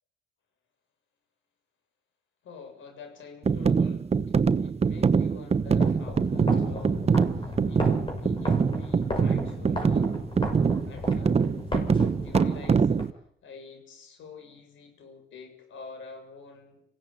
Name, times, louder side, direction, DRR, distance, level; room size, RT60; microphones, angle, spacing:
voice 1, 2.4-10.1 10.8-11.8 12.2-16.8, left 5 dB, 75° left, 6 dB, 7.2 m, -48 dB
sound 1, 3.4-13.1, right 5 dB, 30° right, 0.9 m, -24 dB
sound 2, 5.7-13.1, left 1 dB, 25° left, 6.5 m, -35 dB
27.0 x 16.5 x 9.0 m, 0.72 s
cardioid pair, 90°, 20 cm